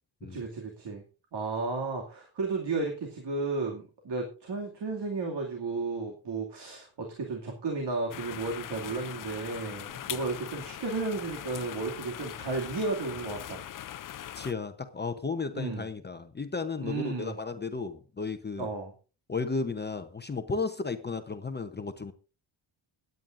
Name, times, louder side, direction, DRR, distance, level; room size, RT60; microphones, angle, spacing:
voice 1, 0.2-1.0 1.3-13.6 15.5-15.9 16.8-17.4 18.6-18.9, right 3 dB, 60° right, 1 dB, 2.6 m, -33 dB
sound 1, 8.1-14.5, left 11 dB, 45° left, 0.5 m, -41 dB
voice 2, 14.4-18.7 19.3-22.1, left 4 dB, 20° left, 7 dB, 0.9 m, -34 dB
24.0 x 9.4 x 2.6 m, 0.34 s
cardioid pair, 125°, 46 cm